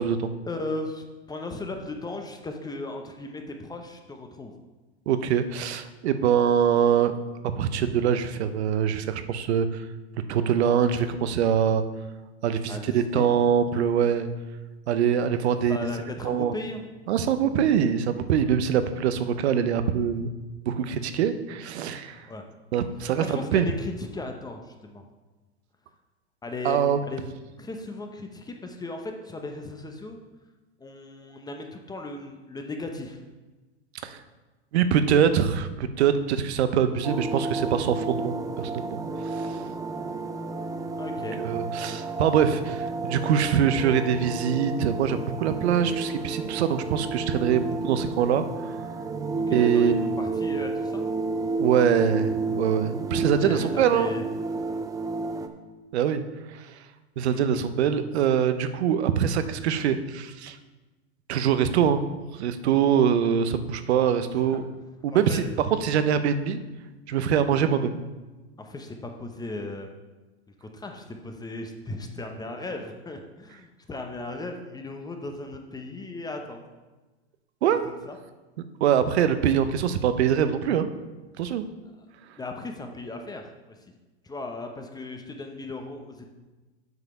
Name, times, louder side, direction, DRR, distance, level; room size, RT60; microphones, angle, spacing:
voice 1, 0.4-4.5 12.7-13.3 15.7-16.9 22.3-22.4 23.2-25.1 26.4-26.8 27.1-27.2 27.6-30.2 30.8-33.2 41.0-41.4 49.5-51.0 53.1-54.2 57.3-57.5 64.3-64.6 65.1-65.4 68.6-69.9 70.6-76.6 77.8-78.2 81.4-81.5 82.4-83.8 84.2-86.3, left 2 dB, 10° left, 3 dB, 0.8 m, -36 dB
voice 2, 5.1-7.1 7.5-9.8 10.3-11.8 12.4-14.3 14.9-15.8 16.2-16.5 17.1-20.3 20.7-22.3 22.7-23.7 26.6-27.0 34.0-34.2 34.7-39.0 39.3-39.6 41.4-48.7 49.5-50.0 51.6-54.1 55.9-56.2 56.5-56.8 57.2-60.6 61.3-62.0 62.4-64.6 65.0-65.4 65.8-66.6 67.1-68.0 77.6-77.9 78.8-80.9 81.4-81.7, right 8 dB, 70° right, 11 dB, 0.8 m, -23 dB
sound 1, 37.0-55.5, right 3 dB, 10° right, 0.4 m, -31 dB
8.0 x 4.9 x 5.6 m, 1.2 s
hypercardioid pair, 110°, 34 cm